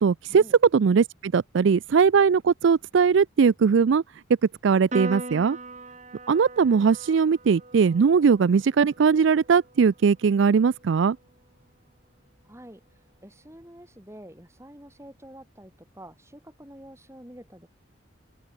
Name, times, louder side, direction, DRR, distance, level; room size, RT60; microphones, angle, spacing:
voice 1, 0.0-0.4 0.7-4.0 4.6-5.6 6.3-11.2, right 6 dB, 70° right, 0.4 m, -20 dB
Piano, 4.9-11.6, right 2 dB, 35° right, 6.5 m, -41 dB
voice 2, 12.5-12.8 13.2-17.7, equal, 15° right, 4.1 m, -47 dB
open air
head